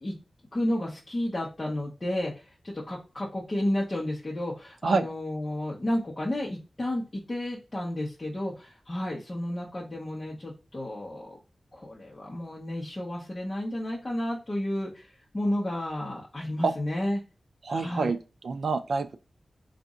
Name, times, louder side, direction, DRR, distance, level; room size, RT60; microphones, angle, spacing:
voice 1, 0.5-11.4 11.7-17.2 17.7-18.1, left 1 dB, 25° left, 1.0 m, -32 dB
voice 2, 17.6-18.2 18.4-19.2, right 4 dB, 75° right, 0.4 m, -26 dB
4.1 x 2.5 x 3.6 m
wide cardioid pair, 130°, 0 cm